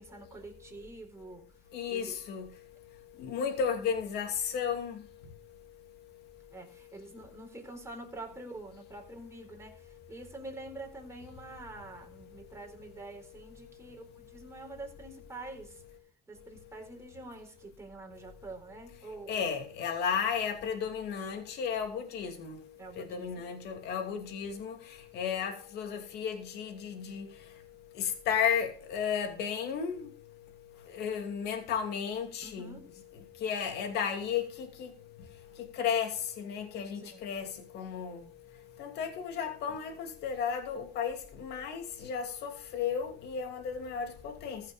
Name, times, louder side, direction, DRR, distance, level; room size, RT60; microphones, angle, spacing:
voice 1, 0.0-1.5 1.9-2.2 6.5-15.8 16.3-19.3 22.8-23.5 32.4-32.9 36.9-37.2, right 2 dB, 15° right, 4.1 m, -46 dB
voice 2, 1.7-2.5 3.2-5.0 19.3-22.6 23.0-24.8 25.1-27.3 28.0-30.1 30.9-32.8 33.4-34.9 35.7-37.5 37.7-38.2 38.8-44.6, left 7 dB, 75° left, 2.6 m, -33 dB
15.0 x 6.5 x 5.1 m
cardioid pair, 110°, 17 cm